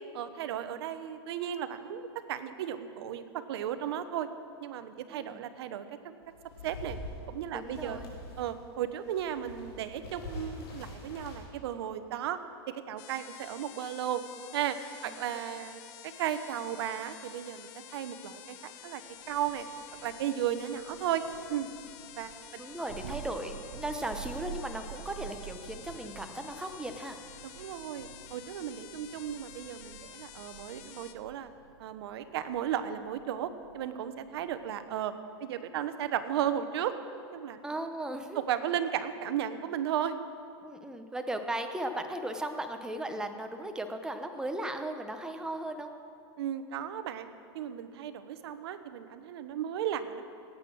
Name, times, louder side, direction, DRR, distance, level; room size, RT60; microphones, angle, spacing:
voice 1, 0.1-4.3 4.6-6.1 6.6-7.0 7.3-8.0 8.4-12.4 12.7-14.2 14.5-14.8 15.0-19.0 19.3-19.7 20.0-21.2 21.5-21.7 22.2-22.6 27.6-31.5 31.8-35.1 35.4-36.9 37.3-37.6 38.3-40.2 46.4-47.3 47.5-50.2, right 10 dB, 70° right, 11 dB, 1.0 m, -35 dB
voice 2, 5.1-5.4 7.5-8.1 15.1-15.4 22.6-27.2 37.6-38.4 40.6-45.9, right 1 dB, 5° right, 6 dB, 0.9 m, -37 dB
sound 1, 6.2-8.6 8.9-11.5, left 2 dB, 65° left, 4.1 m, -44 dB
sound 2, 13.0-31.1, left 12 dB, 45° left, 0.8 m, -50 dB
Thunder, 19.2-35.0, right 9 dB, 90° right, 0.7 m, -49 dB
17.0 x 8.7 x 6.2 m, 2.4 s
supercardioid pair, 135°, 14 cm